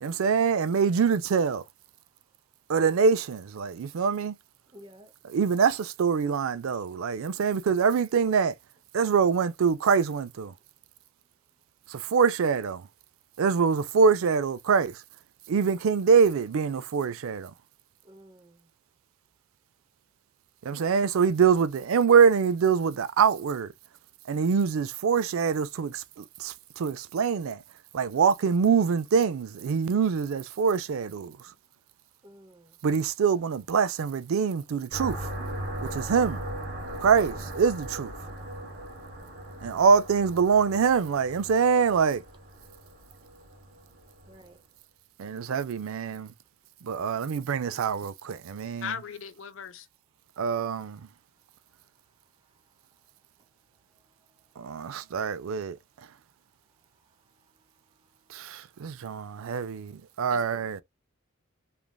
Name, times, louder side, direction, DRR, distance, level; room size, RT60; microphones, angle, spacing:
voice 1, 0.0-1.6 2.7-4.4 5.2-8.5 8.9-10.5 11.9-12.9 13.4-15.0 15.5-17.5 20.6-23.7 24.3-27.6 27.9-31.4 32.8-35.3 35.8-36.4 37.0-38.1 39.6-42.2 45.2-46.3 46.8-48.9 50.4-51.1 54.6-55.8 58.3-60.8, right 6 dB, 70° right, 0.4 m, -24 dB
voice 2, 4.7-5.1 18.0-18.6 32.2-32.7 44.3-44.6, equal, 20° right, 0.6 m, -52 dB
sound 1, 34.9-44.5, right 1 dB, 45° right, 0.9 m, -39 dB
voice 3, 48.8-49.9 60.3-60.5, left 7 dB, 60° left, 0.5 m, -37 dB
3.2 x 2.4 x 2.2 m
head